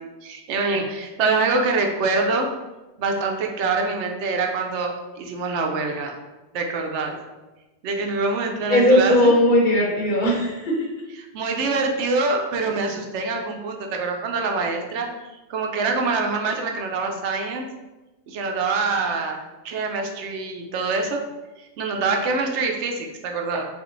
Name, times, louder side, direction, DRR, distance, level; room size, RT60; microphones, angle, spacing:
voice 1, 0.0-2.5 3.0-6.2 6.5-7.2 7.8-9.3 11.3-15.1 15.5-17.7 18.3-19.4 19.6-21.3 21.6-23.7, right 3 dB, 80° right, 3 dB, 0.9 m, -25 dB
voice 2, 8.7-10.9, left 1 dB, 50° left, -3 dB, 1.0 m, -18 dB
5.2 x 2.4 x 3.1 m, 1.1 s
omnidirectional pair, 1.2 m